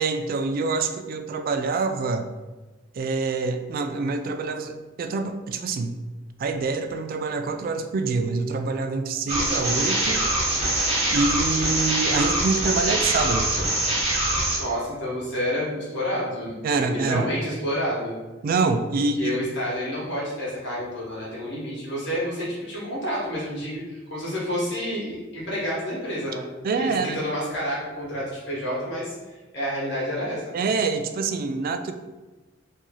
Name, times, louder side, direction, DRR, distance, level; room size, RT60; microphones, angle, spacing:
voice 1, 0.0-2.3 2.9-6.0 6.4-10.6 11.1-13.6 16.6-17.3 18.4-19.4 26.6-27.2 30.5-31.9, right 4 dB, 50° right, 8 dB, 0.3 m, -26 dB
sound 1, 9.3-14.6, right 1 dB, 35° right, 0.9 m, -24 dB
voice 2, 14.6-18.1 19.2-26.4 26.8-29.1 29.5-30.6, equal, 65° left, -6 dB, 1.5 m, -29 dB
3.0 x 2.6 x 3.7 m, 1.2 s
head